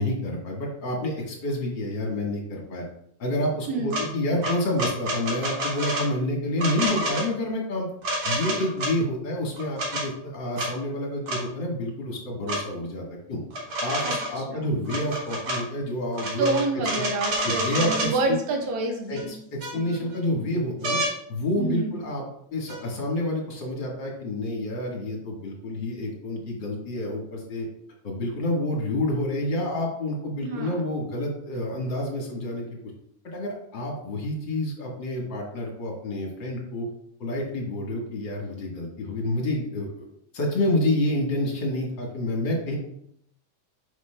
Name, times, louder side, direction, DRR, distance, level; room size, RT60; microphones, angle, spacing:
voice 1, 0.0-2.8 3.2-7.9 8.2-13.4 13.8-16.6 17.4-18.4 19.1-19.4 19.7-21.0 21.3-27.7 28.0-32.7 33.3-36.9 37.2-40.0 40.3-42.8, left 1 dB, 50° left, -1 dB, 1.6 m, -28 dB
sound 1, 3.9-4.0 4.4-6.1 6.6-7.3 8.0-8.9 9.6-10.0 10.6-10.7 11.3-11.4 12.5-12.6 13.5-14.4 14.9-15.6 16.1-18.1 19.2-19.3 19.6-20.1 20.8-21.1 22.7-22.8, right 1 dB, 50° right, 2.5 m, -28 dB
voice 2, 16.4-19.3 21.6-22.0 30.4-30.7, right 2 dB, 70° right, 2 dB, 2.4 m, -27 dB
9.3 x 5.9 x 2.2 m, 0.71 s
omnidirectional pair, 3.6 m